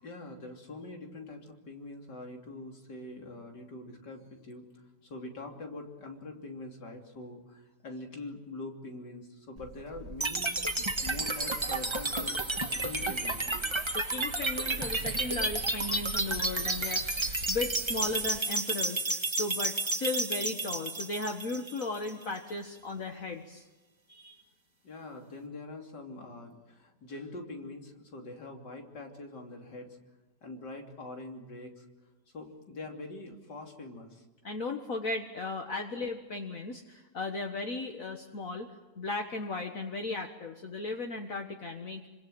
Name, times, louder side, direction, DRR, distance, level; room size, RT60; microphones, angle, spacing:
voice 1, 0.0-10.6 11.0-12.4 12.8-13.7 24.8-30.0 30.4-31.9 32.3-34.3, left 2 dB, 85° left, 2 dB, 3.6 m, -44 dB
Bird, 9.6-18.4, right 2 dB, 55° right, 2.5 m, -46 dB
sound 1, 10.2-22.2, right 2 dB, 20° right, 1.3 m, -31 dB
voice 2, 13.9-23.6 24.1-24.4 34.4-38.7 39.0-42.0, left 3 dB, 55° left, 3 dB, 1.8 m, -36 dB
26.0 x 25.5 x 7.8 m, 1.2 s
omnidirectional pair, 1.8 m